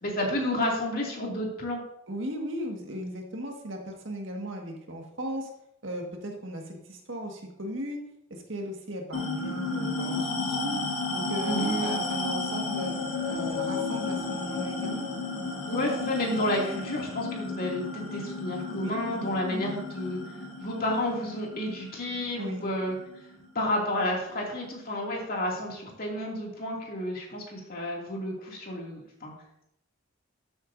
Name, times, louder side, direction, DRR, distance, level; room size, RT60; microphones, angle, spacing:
voice 1, 0.0-1.8 11.4-11.9 15.7-20.2 20.6-23.0 23.5-29.3, left 1 dB, 45° left, -1 dB, 2.5 m, -31 dB
voice 2, 2.1-5.5 5.8-8.0 8.3-10.8 11.1-12.9 13.3-15.1 18.7-19.8 22.3-22.6, equal, 60° right, 1 dB, 1.8 m, -36 dB
sound 1, 9.1-23.9, left 3 dB, 70° left, 2.1 m, -33 dB
12.5 x 8.0 x 2.7 m, 0.78 s
head